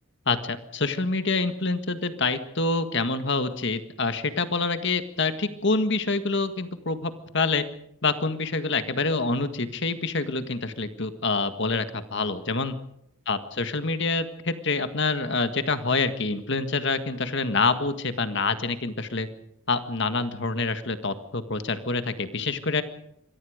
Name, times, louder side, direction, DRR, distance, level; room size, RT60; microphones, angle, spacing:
voice 1, 0.3-7.6 8.0-12.7 13.3-19.3 19.7-22.8, left 3 dB, 55° left, 9 dB, 1.8 m, -26 dB
26.5 x 23.0 x 5.1 m, 0.75 s
head